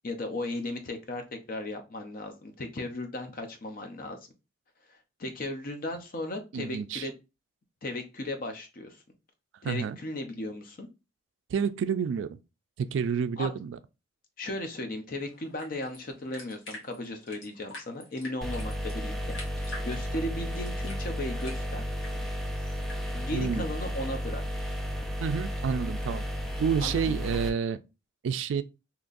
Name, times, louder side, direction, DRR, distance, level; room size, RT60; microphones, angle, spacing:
voice 1, 0.0-4.2 4.9-7.1 7.8-9.0 9.6-10.9 13.4-13.6 14.4-21.8 23.1-24.4 26.8-27.2, left 1 dB, 45° left, 0.6 m, -36 dB
voice 2, 6.5-7.1 9.6-10.0 11.5-12.4 12.8-13.8 23.3-23.6 25.2-26.2 26.6-27.8 28.2-28.6, right 6 dB, 70° right, 0.3 m, -29 dB
sound 1, 15.2-23.0, left 1 dB, 70° left, 1.4 m, -48 dB
sound 2, 18.4-27.5, equal, ahead, 0.4 m, -33 dB
3.8 x 2.9 x 2.5 m
head